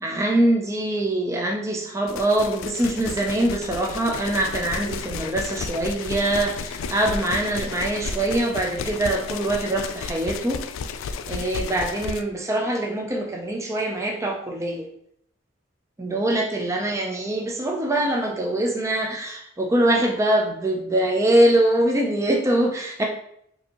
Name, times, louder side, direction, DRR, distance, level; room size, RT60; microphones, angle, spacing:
voice 1, 0.0-10.6 11.3-14.9 16.0-23.0, right 1 dB, 15° right, 1 dB, 0.4 m, -23 dB
sound 1, 2.1-12.2, left 5 dB, 80° left, 0.3 m, -33 dB
4.5 x 2.7 x 2.9 m, 0.71 s
head